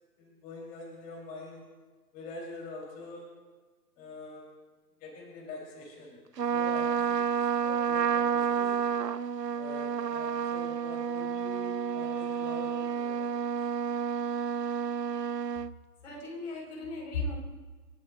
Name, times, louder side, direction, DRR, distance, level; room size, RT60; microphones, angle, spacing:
voice 1, 0.2-1.6 2.1-3.3 4.0-4.6 5.0-6.2 6.5-8.8 9.5-13.5, left 2 dB, 20° left, -2 dB, 3.0 m, -45 dB
Trumpet, 6.4-15.7, right 7 dB, 85° right, 0.8 m, -30 dB
voice 2, 16.0-17.4, left 2 dB, 50° left, -1 dB, 4.3 m, -35 dB
29.5 x 10.5 x 2.3 m, 1.3 s
figure-of-eight pair, 140°, 48 cm